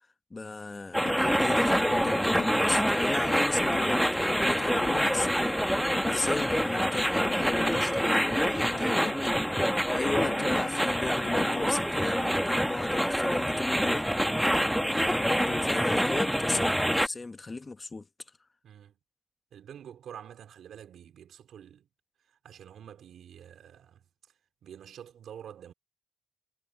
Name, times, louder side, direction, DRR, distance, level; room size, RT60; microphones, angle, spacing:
voice 1, 0.3-9.3 9.9-14.4 14.8-18.1, left 3 dB, 30° left, 1.1 m, -35 dB
sound 1, 0.9-17.1, equal, ahead, 1.2 m, -26 dB
sound 2, 1.1-11.7, left 7 dB, 65° left, 0.8 m, -42 dB
voice 2, 18.6-19.0 19.5-21.9 22.2-24.0 24.6-25.7, right 9 dB, 85° right, 4.2 m, -47 dB
cardioid pair, 95°, 0 cm